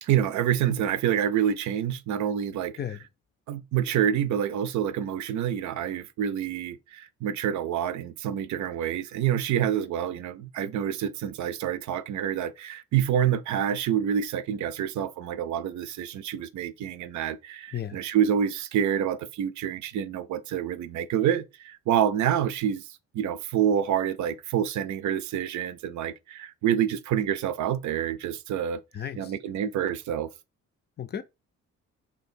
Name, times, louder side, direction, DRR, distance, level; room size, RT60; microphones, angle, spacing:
voice 1, 0.0-2.7 3.5-22.9 23.1-28.8 29.2-30.3, right 9 dB, 70° right, 0.5 m, -27 dB
voice 2, 28.9-29.3 31.0-31.2, left 9 dB, 35° left, 0.4 m, -34 dB
2.9 x 2.8 x 4.3 m
cardioid pair, 90°, 30 cm